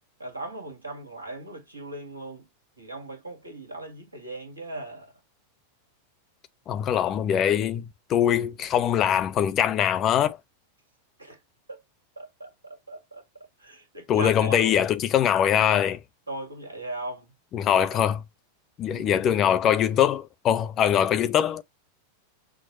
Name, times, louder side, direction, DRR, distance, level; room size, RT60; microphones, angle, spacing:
voice 1, 0.2-2.5 2.8-5.1 11.2-11.4 11.7-11.8 12.2-13.2 13.6-14.7 16.3-17.3 17.6-18.0 18.8-19.4, right 2 dB, 80° right, 1.5 m, -38 dB
voice 2, 6.7-10.4 14.1-16.0 17.5-18.2 18.8-21.6, left 9 dB, 30° left, 0.6 m, -22 dB
6.2 x 2.1 x 2.7 m
figure-of-eight pair, 90°, 0 cm